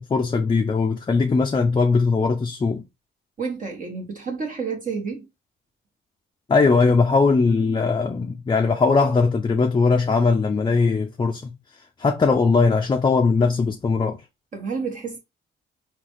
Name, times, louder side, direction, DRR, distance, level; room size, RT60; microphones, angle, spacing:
voice 1, 0.1-2.8 6.5-11.5 12.0-14.2, left 4 dB, 25° left, 0.5 m, -20 dB
voice 2, 3.4-5.3 14.5-15.2, right 5 dB, 40° right, 1.2 m, -30 dB
3.9 x 2.3 x 3.1 m
cardioid pair, 90°, 20 cm